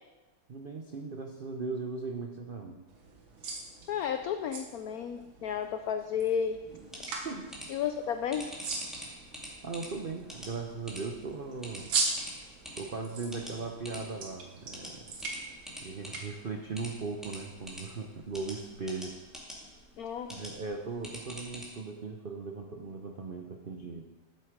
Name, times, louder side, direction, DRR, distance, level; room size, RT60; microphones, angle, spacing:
voice 1, 0.5-2.8 7.2-7.5 9.6-11.9 12.8-15.1 15.8-19.2 20.3-24.1, right 4 dB, 65° right, 3 dB, 0.5 m, -38 dB
sound 1, 2.9-16.2, right 3 dB, 90° right, 2.2 m, -40 dB
voice 2, 3.9-6.6 7.7-8.6 20.0-20.5, left 8 dB, 80° left, 8 dB, 0.8 m, -32 dB
sound 2, 6.7-21.6, equal, ahead, 2.3 m, -47 dB
12.0 x 7.8 x 5.1 m, 1.2 s
omnidirectional pair, 2.1 m